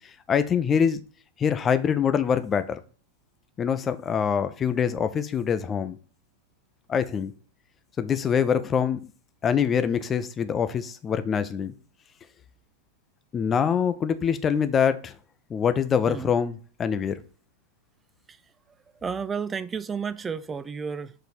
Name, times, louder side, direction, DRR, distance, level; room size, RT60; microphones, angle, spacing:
voice 1, 0.3-1.0 1.4-2.8 3.6-6.0 6.9-7.3 8.0-9.0 9.4-11.7 13.3-15.1 15.5-16.5 16.8-17.1, left 7 dB, 25° left, 0.6 m, -24 dB
voice 2, 19.0-21.1, right 6 dB, 20° right, 0.3 m, -32 dB
6.9 x 3.9 x 4.7 m
figure-of-eight pair, 90°, 0 cm